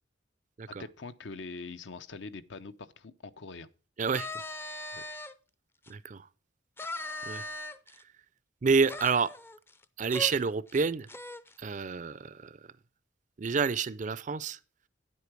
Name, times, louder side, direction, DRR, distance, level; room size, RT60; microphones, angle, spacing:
voice 1, 0.7-3.7 4.9-5.0, left 3 dB, 70° left, 0.7 m, -43 dB
voice 2, 4.0-4.3 5.9-6.3 7.3-7.5 8.6-9.3 10.0-11.1 11.6-12.6 13.4-14.6, right 5 dB, 40° right, 0.4 m, -28 dB
sound 1, 4.1-5.3 5.9-6.0 6.8-8.0 8.9-9.8 10.1-10.3 10.7-10.8 11.1-11.5, left 1 dB, 10° left, 0.5 m, -39 dB
9.8 x 8.4 x 4.6 m
head